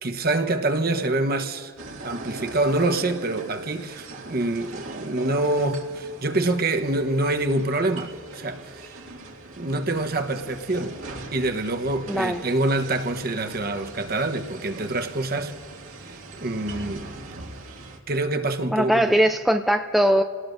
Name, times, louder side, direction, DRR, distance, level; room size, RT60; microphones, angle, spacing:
voice 1, 0.0-1.7 2.0-9.0 9.5-11.0 11.3-15.5 16.0-17.1 18.1-19.2, right 2 dB, 45° right, 1.0 m, -26 dB
sound 1, 1.8-18.0, right 2 dB, 70° right, 2.2 m, -41 dB
voice 2, 12.1-12.4 18.7-20.2, equal, ahead, 0.4 m, -20 dB
28.5 x 18.5 x 2.6 m
head